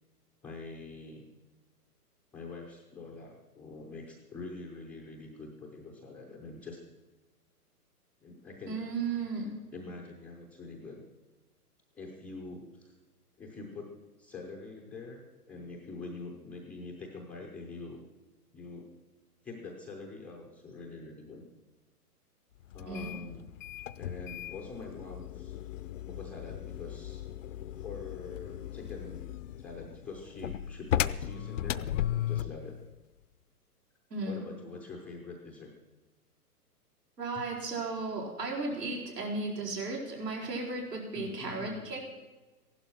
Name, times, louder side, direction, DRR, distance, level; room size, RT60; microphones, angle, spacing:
voice 1, 0.4-1.3 2.3-6.8 8.2-8.8 9.7-11.0 12.0-12.9 13.4-13.9 14.2-18.0 18.5-18.9 19.4-21.4 22.7-23.5 24.0-25.6 26.0-27.2 27.8-29.2 29.6-32.8 34.3-35.7 41.1-41.9, left 3 dB, 5° left, -1 dB, 0.5 m, -45 dB
voice 2, 8.7-9.6 22.9-23.2 34.1-34.4 37.2-42.0, right 3 dB, 90° right, -2 dB, 4.9 m, -35 dB
sound 1, 22.7-32.6, left 11 dB, 55° left, 0.6 m, -36 dB
15.0 x 11.5 x 6.1 m, 1.2 s
hypercardioid pair, 130°, 47 cm